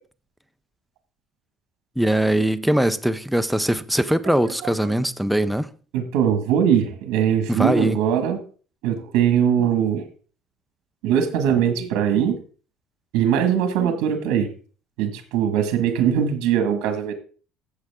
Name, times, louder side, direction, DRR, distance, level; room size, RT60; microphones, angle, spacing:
voice 1, 2.0-5.7 7.5-8.0, right 1 dB, ahead, 0.4 m, -21 dB
voice 2, 4.2-4.7 5.9-8.4 8.8-10.0 11.0-12.4 13.1-14.5 15.0-17.1, right 9 dB, 80° right, 1.9 m, -21 dB
14.5 x 7.3 x 3.6 m
cardioid pair, 180°, 0 cm